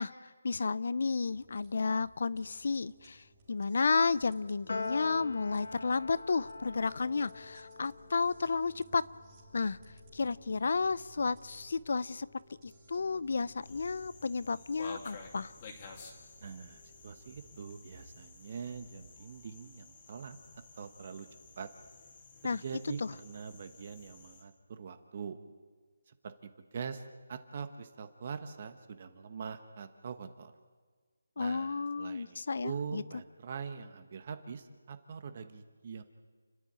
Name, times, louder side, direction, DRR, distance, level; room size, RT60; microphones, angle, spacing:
voice 1, 0.0-9.0 9.5-9.8 10.1-12.3 12.6-15.5 22.4-22.6 23.0-23.1 31.4-33.0, left 4 dB, 50° left, 19 dB, 0.5 m, -32 dB
sound 1, 1.2-17.7, equal, 15° right, 3.2 m, -59 dB
Piano, 4.7-11.2, left 3 dB, 75° left, 1.9 m, -45 dB
sound 2, 13.6-24.4, left 4 dB, 25° left, 2.3 m, -52 dB
voice 2, 16.4-20.4 20.8-21.3 21.6-21.7 22.4-25.4 26.1-26.3 26.7-27.0 27.3-30.5 31.4-36.0, right 6 dB, 35° right, 9 dB, 1.2 m, -43 dB
29.5 x 11.0 x 8.8 m, 1.5 s
hypercardioid pair, 170°, 0 cm